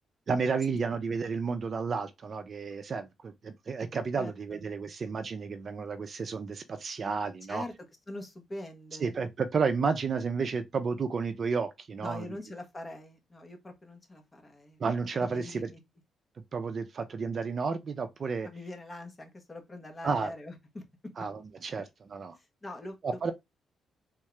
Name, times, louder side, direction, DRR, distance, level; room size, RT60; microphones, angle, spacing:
voice 1, 0.3-7.6 9.0-12.4 14.8-15.7 16.5-18.5 20.0-20.3 21.2-21.8 22.1-22.4 23.0-23.3, right 5 dB, 50° right, 0.5 m, -31 dB
voice 2, 4.2-4.6 7.5-7.7 8.1-9.1 12.0-14.8 15.2-15.8 18.4-20.8 22.4-23.3, left 1 dB, 25° left, 1.0 m, -43 dB
3.6 x 2.3 x 3.1 m
cardioid pair, 95°, 0 cm